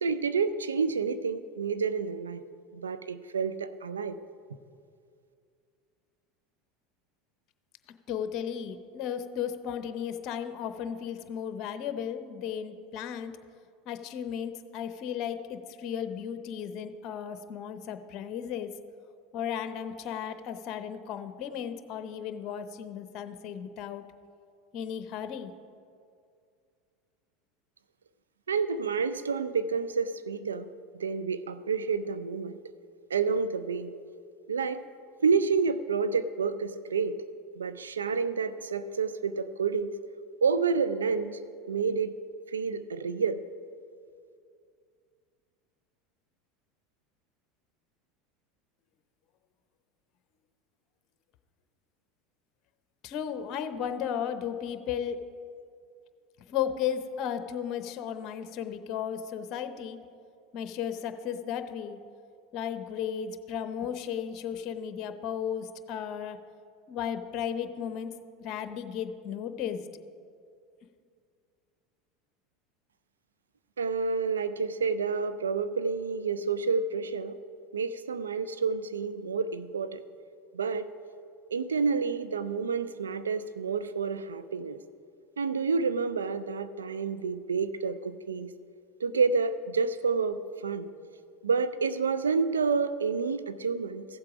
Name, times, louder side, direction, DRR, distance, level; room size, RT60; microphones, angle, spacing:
voice 1, 0.0-2.4 2.7-4.2 28.5-30.7 30.9-32.6 33.1-33.9 34.5-34.8 35.2-37.2 37.6-39.9 40.4-41.4 41.7-42.2 42.5-43.4 73.8-77.4 77.7-80.0 80.5-80.9 81.5-84.8 85.4-88.5 89.0-90.9 91.4-94.1, right 5 dB, 90° right, 12 dB, 0.4 m, -29 dB
voice 2, 8.1-13.3 13.9-18.7 19.3-24.0 24.7-25.5 53.0-55.2 56.5-60.0 60.5-62.0 62.5-66.4 66.9-68.1 68.4-69.8, left 8 dB, 50° left, 10 dB, 0.7 m, -35 dB
15.0 x 7.6 x 5.0 m, 2.3 s
hypercardioid pair, 85°, 0 cm